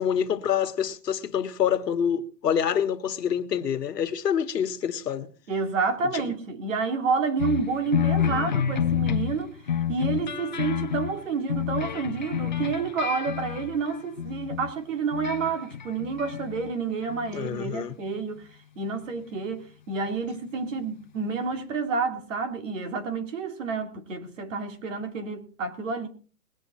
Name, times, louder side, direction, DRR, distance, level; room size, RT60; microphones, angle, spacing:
voice 1, 0.0-5.3 6.1-6.3 17.3-17.9, left 8 dB, 90° left, 1.6 m, -26 dB
voice 2, 5.5-9.5 9.9-18.4 18.8-26.1, right 5 dB, 50° right, 3.0 m, -29 dB
sound 1, 7.4-14.7 15.1-16.7 17.0-17.5 18.4-18.5, left 9 dB, 30° left, 0.5 m, -29 dB
21.5 x 7.7 x 4.2 m
hypercardioid pair, 170°, 47 cm